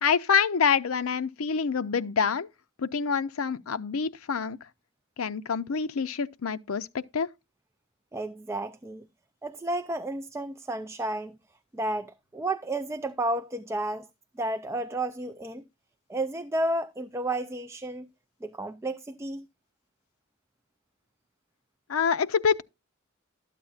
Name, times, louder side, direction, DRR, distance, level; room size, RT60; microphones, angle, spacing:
voice 1, 0.0-2.5 2.8-4.6 5.2-7.3 21.9-22.6, left 6 dB, 75° left, 0.6 m, -26 dB
voice 2, 8.1-9.1 9.4-11.4 11.7-14.1 14.3-15.6 16.1-18.1 18.4-19.5, right 1 dB, 15° right, 0.4 m, -32 dB
13.0 x 8.4 x 2.4 m
head